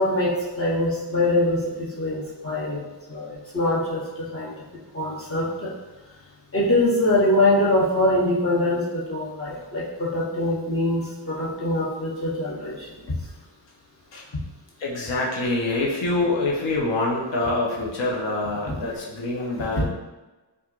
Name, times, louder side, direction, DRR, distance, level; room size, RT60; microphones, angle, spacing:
voice 1, 0.0-4.5 4.9-5.7 6.5-13.2 18.7-18.8, left 1 dB, 30° left, -6 dB, 0.9 m, -23 dB
voice 2, 14.8-19.9, left 2 dB, 75° left, -3 dB, 0.9 m, -25 dB
4.4 x 2.5 x 2.5 m, 1.2 s
wide cardioid pair, 100°, 44 cm